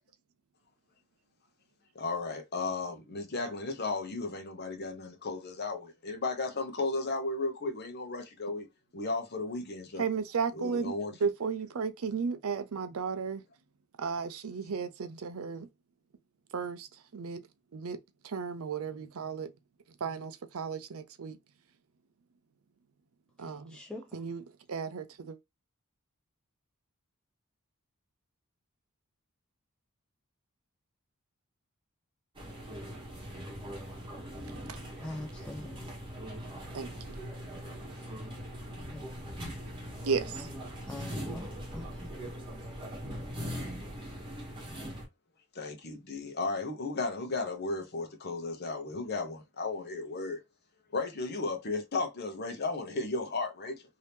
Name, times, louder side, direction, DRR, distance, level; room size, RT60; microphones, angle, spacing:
voice 1, 1.9-8.7 8.9-10.0 10.5-11.1 45.5-50.4 50.9-53.8, left 3 dB, 45° left, 0.9 m, -34 dB
voice 2, 10.0-13.4 14.0-15.7 16.5-16.9 17.1-17.4 17.7-18.0 18.2-19.5 20.0-21.4 23.4-23.8 24.1-24.4 24.7-25.4 34.7-34.8 36.7-36.9 40.0-40.5, right 5 dB, 70° right, 0.5 m, -34 dB
voice 3, 23.4-24.3 35.0-35.9 38.9-39.0 40.9-42.1, left 1 dB, 5° left, 0.4 m, -44 dB
sound 1, 32.4-45.1, equal, 20° right, 1.1 m, -41 dB
2.8 x 2.7 x 3.4 m
head